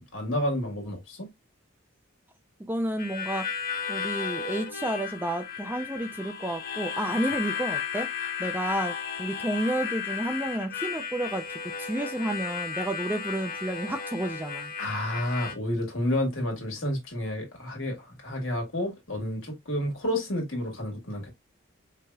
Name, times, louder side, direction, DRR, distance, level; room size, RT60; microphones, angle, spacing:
voice 1, 0.1-1.3 14.8-18.0 18.2-21.3, left 1 dB, 75° left, 1.7 m, -30 dB
voice 2, 2.7-3.5 3.9-8.1 8.4-11.5 11.8-14.7, right 1 dB, 10° right, 0.4 m, -31 dB
Harmonica, 3.0-15.5, left 6 dB, 45° left, 0.7 m, -34 dB
4.7 x 2.8 x 2.2 m
head